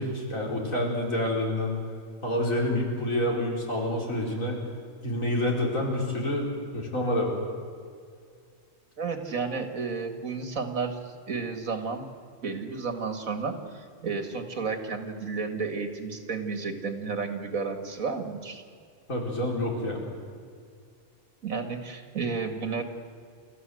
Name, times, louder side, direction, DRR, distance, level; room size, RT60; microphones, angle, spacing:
voice 1, 0.0-1.8 2.2-4.6 5.0-7.3 19.1-20.0, left 1 dB, 80° left, -1 dB, 4.9 m, -28 dB
voice 2, 9.0-11.0 11.3-12.1 12.4-18.6 21.4-22.8, right 4 dB, 85° right, 6 dB, 2.5 m, -32 dB
30.0 x 14.5 x 7.8 m, 2.2 s
omnidirectional pair, 1.4 m